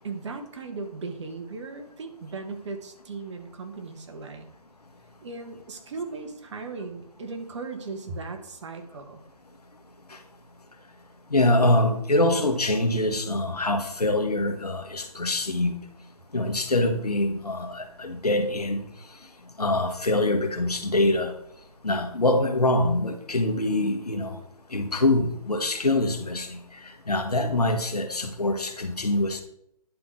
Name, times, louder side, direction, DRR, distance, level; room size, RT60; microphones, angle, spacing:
voice 1, 0.0-4.5 5.2-9.2, right 4 dB, 50° right, 6 dB, 1.5 m, -37 dB
voice 2, 11.3-15.7 16.3-18.8 19.6-21.3 21.8-24.4 24.7-26.6 27.1-29.4, left 1 dB, 85° left, 6 dB, 1.6 m, -24 dB
10.5 x 3.9 x 6.2 m, 0.72 s
figure-of-eight pair, 140°, 19 cm